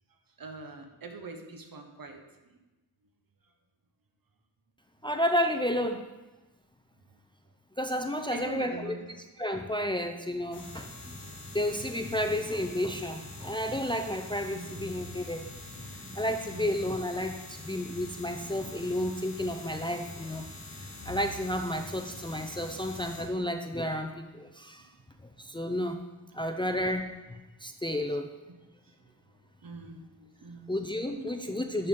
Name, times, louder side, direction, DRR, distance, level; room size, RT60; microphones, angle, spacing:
voice 1, 0.4-2.2 8.3-9.1 12.2-12.3 14.5-14.8 16.5-16.8 24.8-24.9 25.5-25.6 29.6-30.7 31.2-31.6, right 3 dB, 55° right, 5 dB, 1.2 m, -43 dB
voice 2, 5.0-6.1 7.8-8.9 9.4-10.9 11.5-15.4 16.2-20.4 20.7-24.9 25.4-26.0 26.3-27.1 27.6-28.3 30.7-31.9, left 1 dB, 10° left, 4 dB, 0.5 m, -31 dB
sound 1, 10.5-23.2, left 2 dB, 85° left, 2.2 m, -44 dB
11.0 x 4.1 x 3.8 m, 1.1 s
cardioid pair, 50°, 42 cm